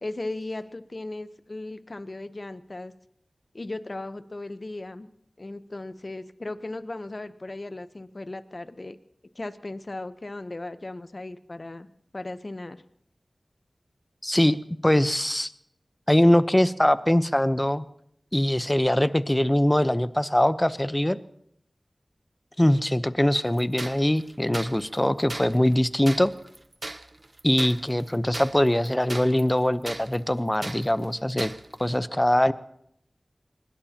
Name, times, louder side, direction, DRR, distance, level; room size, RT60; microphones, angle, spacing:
voice 1, 0.0-2.9 3.5-5.1 5.4-9.0 9.3-11.9 12.1-12.8, left 2 dB, 50° left, 12 dB, 0.9 m, -37 dB
voice 2, 14.2-14.6 14.8-15.5 16.1-17.8 18.3-21.2 22.6-26.3 27.4-31.5 31.8-32.5, left 1 dB, 15° left, 13 dB, 0.8 m, -22 dB
sound 1, 23.5-31.9, right 2 dB, 45° right, 0.8 m, -39 dB
23.5 x 20.5 x 2.9 m, 0.73 s
wide cardioid pair, 45°, 0 cm